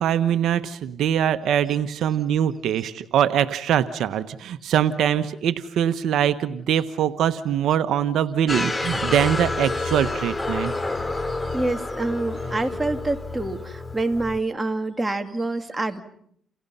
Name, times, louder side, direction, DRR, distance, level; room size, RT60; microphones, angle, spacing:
voice 1, 0.0-10.7, right 9 dB, 75° right, 11 dB, 1.1 m, -23 dB
sound 1, 8.5-14.4, left 2 dB, 20° left, 2.9 m, -29 dB
voice 2, 10.9-16.0, right 2 dB, 15° right, 6 dB, 2.6 m, -27 dB
29.5 x 29.0 x 5.6 m, 0.65 s
cardioid pair, 80°, 0 cm